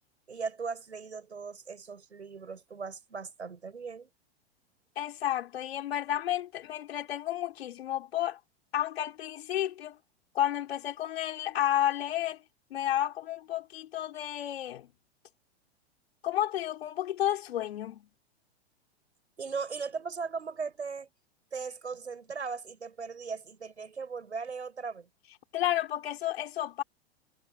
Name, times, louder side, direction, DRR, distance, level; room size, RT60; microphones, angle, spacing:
voice 1, 0.3-4.1 19.4-21.1 21.5-25.1, right 5 dB, 90° right, 7.5 m, -38 dB
voice 2, 5.0-8.4 8.7-10.0 10.3-12.4 12.7-14.9 16.2-18.1 25.5-26.8, left 12 dB, 65° left, 4.4 m, -31 dB
hypercardioid pair, 105°, 33 cm